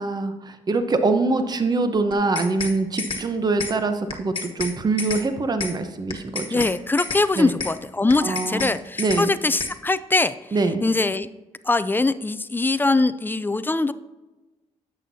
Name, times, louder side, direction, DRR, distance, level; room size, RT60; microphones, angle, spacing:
voice 1, 0.0-6.7 7.4-7.5 8.2-8.7 9.0-9.3 10.5-10.8, right 3 dB, 30° right, 8 dB, 0.8 m, -24 dB
sound 1, 2.1-2.7 3.0-3.2 3.6-3.7 4.1-4.7 5.0-5.2 5.6-5.7 6.1-6.7 7.0-7.2 7.6-7.7 8.1-8.7 9.0-9.2 9.6-9.7, left 4 dB, 40° left, 1.3 m, -29 dB
voice 2, 6.5-10.3 10.8-11.3 11.6-13.9, left 3 dB, 15° left, 14 dB, 0.4 m, -22 dB
10.5 x 7.7 x 2.7 m, 1.1 s
cardioid pair, 80°, 13 cm